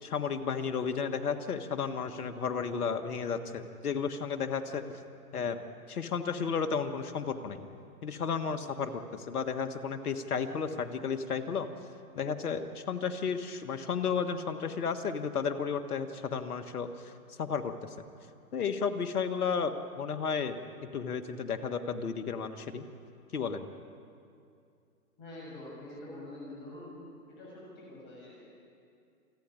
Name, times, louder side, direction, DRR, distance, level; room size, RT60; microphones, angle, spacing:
voice 1, 0.0-4.8 5.3-5.6 5.9-7.6 8.0-11.7 12.1-17.1 17.4-17.9 18.5-22.8 23.3-23.7, left 6 dB, 70° left, 9 dB, 1.6 m, -33 dB
voice 2, 25.2-27.0 27.3-28.4, left 1 dB, 25° left, -5 dB, 6.5 m, -46 dB
27.0 x 10.0 x 9.7 m, 2.5 s
hypercardioid pair, 135°, 46 cm